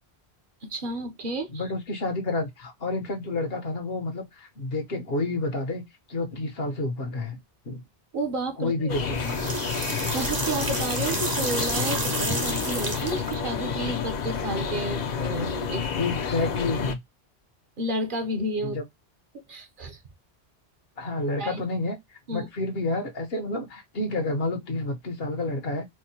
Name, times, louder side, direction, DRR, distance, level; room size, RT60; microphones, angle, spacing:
voice 1, 0.6-1.6 8.1-9.0 10.1-15.9 17.8-18.8 19.5-20.0 21.4-21.6 22.3-22.5, right 1 dB, 55° right, 0.9 m, -31 dB
voice 2, 1.5-5.8 6.1-7.4 7.7-7.8 8.6-9.6 16.0-17.0 18.6-18.8 21.0-25.9, left 2 dB, 70° left, 1.2 m, -29 dB
sound 1, 8.9-16.9, left 6 dB, 50° left, 0.6 m, -30 dB
sound 2, 9.0-13.3, right 2 dB, 25° right, 0.7 m, -30 dB
4.4 x 2.1 x 2.8 m
omnidirectional pair, 1.1 m